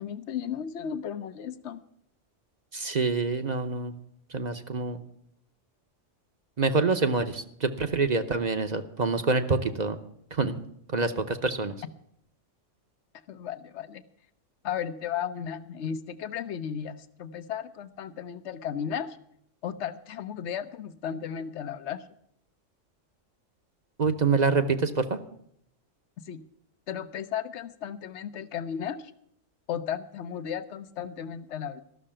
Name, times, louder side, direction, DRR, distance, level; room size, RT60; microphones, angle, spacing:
voice 1, 0.0-1.8 13.3-14.0 14.6-19.2 19.6-22.0 26.3-26.4 26.9-29.1 29.7-31.8, left 8 dB, 70° left, 13 dB, 1.0 m, -34 dB
voice 2, 2.7-3.9 4.3-5.0 6.6-10.0 10.3-10.6 10.9-11.7 24.0-25.2, right 4 dB, 40° right, 8 dB, 0.8 m, -26 dB
13.5 x 6.5 x 8.8 m, 0.70 s
omnidirectional pair, 1.3 m